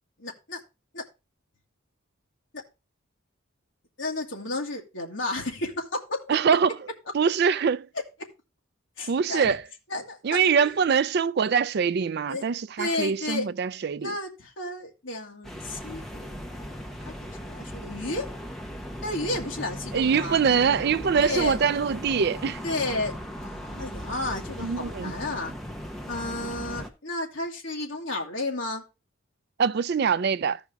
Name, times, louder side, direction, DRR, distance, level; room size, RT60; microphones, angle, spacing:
voice 1, 0.2-0.6 0.9-1.0 4.0-6.3 8.2-8.3 9.0-9.5 9.9-10.7 12.3-12.5 12.8-13.5 14.0-16.8 17.2-18.3 19.0-20.4 21.2-21.6 22.6-25.5 26.1-28.8, left 2 dB, 65° left, 2.0 m, -32 dB
voice 2, 6.3-6.8 7.1-7.9 9.1-9.6 10.2-14.1 19.9-22.6 24.6-25.1 29.6-30.6, right 6 dB, 50° right, 0.4 m, -23 dB
sound 1, 15.4-26.9, equal, ahead, 1.0 m, -37 dB
14.5 x 5.1 x 3.5 m
head